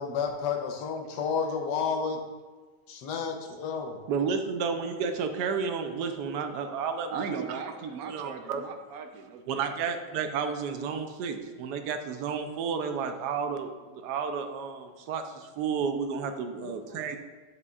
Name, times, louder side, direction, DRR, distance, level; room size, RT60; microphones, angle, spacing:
voice 1, 0.0-2.2 2.9-4.0 15.7-15.8 16.6-16.7, left 6 dB, 85° left, 4 dB, 1.4 m, -31 dB
voice 2, 4.1-7.6 8.0-8.6 9.5-17.2, right 6 dB, 85° right, 6 dB, 1.2 m, -32 dB
voice 3, 7.1-9.8, right 6 dB, 70° right, 5 dB, 1.0 m, -38 dB
8.2 x 6.9 x 2.4 m, 1.4 s
omnidirectional pair, 1.8 m